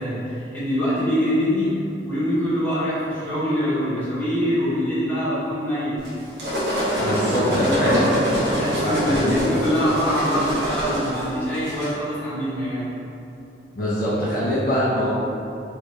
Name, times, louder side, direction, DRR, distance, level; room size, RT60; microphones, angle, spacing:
voice 1, 0.0-1.7 2.0-6.0 6.9-8.1 8.5-12.9, equal, 10° left, -15 dB, 1.4 m, -24 dB
sound 1, 6.0-11.9, equal, 60° right, 0.9 m, -25 dB
voice 2, 7.0-8.1 8.8-9.4 13.7-15.1, equal, 50° left, -9 dB, 0.6 m, -23 dB
3.2 x 3.2 x 2.7 m, 2.8 s
head